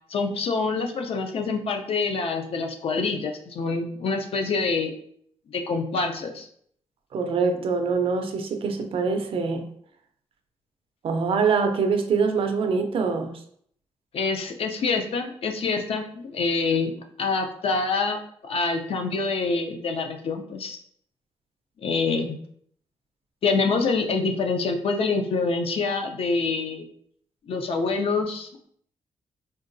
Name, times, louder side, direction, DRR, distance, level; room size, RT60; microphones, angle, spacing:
voice 1, 0.1-4.9 5.5-6.5 14.1-16.9 17.2-20.8 21.8-22.4 23.4-26.8 27.5-28.7, left 4 dB, 60° left, 5 dB, 0.4 m, -26 dB
voice 2, 7.1-9.6 11.0-13.4, right 5 dB, 55° right, 5 dB, 0.4 m, -24 dB
3.8 x 2.2 x 2.5 m, 0.65 s
wide cardioid pair, 145°, 11 cm